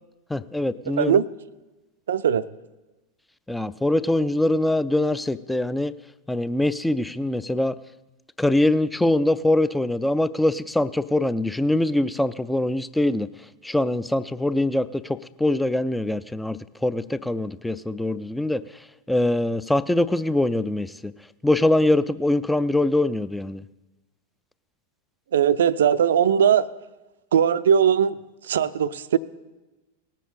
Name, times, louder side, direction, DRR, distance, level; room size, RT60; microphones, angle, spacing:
voice 1, 0.3-1.2 3.5-5.9 6.3-7.7 8.4-13.3 13.6-18.6 19.1-21.1 21.4-23.6, left 1 dB, 5° left, 15 dB, 0.4 m, -23 dB
voice 2, 0.9-1.2 2.1-2.4 25.3-26.7 27.3-28.2 28.4-29.2, right 8 dB, 60° right, 15 dB, 0.4 m, -19 dB
18.5 x 7.4 x 4.2 m, 1.1 s
figure-of-eight pair, 90°, 0 cm